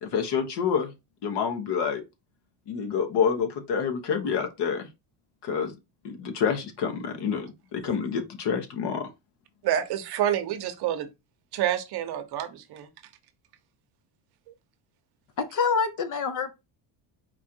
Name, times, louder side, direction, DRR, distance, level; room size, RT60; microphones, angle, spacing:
voice 1, 0.0-0.9 1.2-2.0 2.7-4.9 5.4-5.7 6.0-9.1, left 6 dB, 55° left, 1.2 m, -28 dB
voice 2, 9.6-11.1 11.5-12.9, right 11 dB, 55° right, 0.8 m, -28 dB
voice 3, 15.4-16.5, left 5 dB, 40° left, 0.6 m, -26 dB
4.6 x 2.5 x 4.4 m
cardioid pair, 135°, 47 cm